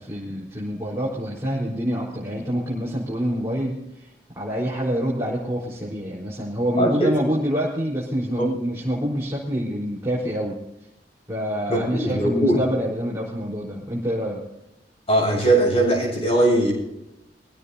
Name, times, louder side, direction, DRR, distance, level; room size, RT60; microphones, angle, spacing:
voice 1, 0.0-3.8 4.3-10.6 11.3-14.4, equal, 15° right, -6 dB, 4.4 m, -26 dB
voice 2, 6.8-7.1 8.4-8.5 11.7-12.6 15.1-16.7, right 1 dB, 35° left, 0 dB, 7.6 m, -20 dB
24.5 x 16.5 x 2.8 m, 0.92 s
head